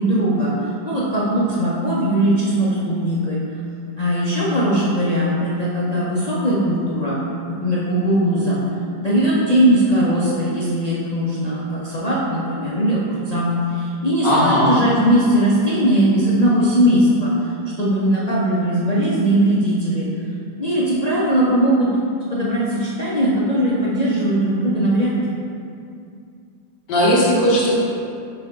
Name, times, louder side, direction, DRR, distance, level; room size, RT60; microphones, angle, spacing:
voice 1, 0.0-3.4 4.0-7.2 7.5-8.6 9.0-17.5 17.8-20.1 20.6-21.9 22.3-25.1, right 1 dB, 50° left, -9 dB, 0.5 m, -19 dB
voice 2, 14.2-14.8 26.9-27.7, equal, 75° left, -7 dB, 2.1 m, -16 dB
6.0 x 3.4 x 5.1 m, 2.5 s
omnidirectional pair, 1.9 m